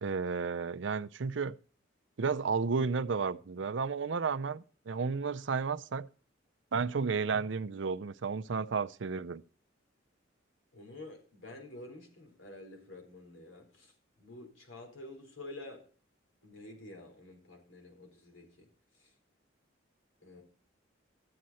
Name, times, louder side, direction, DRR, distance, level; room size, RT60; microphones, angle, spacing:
voice 1, 0.0-1.5 2.2-6.1 6.7-9.4, right 5 dB, 65° right, 0.5 m, -32 dB
voice 2, 10.7-13.9 14.2-15.8 16.4-18.7 19.0-19.1 20.2-20.4, left 2 dB, 80° left, 4.1 m, -49 dB
13.5 x 7.7 x 4.2 m
head